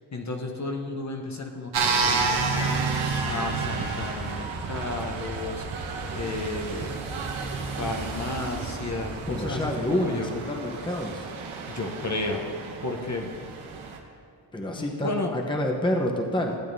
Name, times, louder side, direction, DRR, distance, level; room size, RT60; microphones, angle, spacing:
voice 1, 0.1-2.8 3.2-5.7 6.1-7.1 7.8-10.3 11.7-12.5 12.8-13.3 14.8-15.3, left 2 dB, 35° left, 3 dB, 1.0 m, -32 dB
sound 1, 1.7-14.0, right 4 dB, 85° right, 1.1 m, -31 dB
sound 2, 1.8-9.6, right 3 dB, 50° right, 1.2 m, -39 dB
voice 2, 9.3-11.3 14.5-16.6, left 1 dB, 10° left, 1 dB, 0.9 m, -28 dB
15.5 x 8.5 x 2.7 m, 2.3 s
cardioid pair, 90°, 46 cm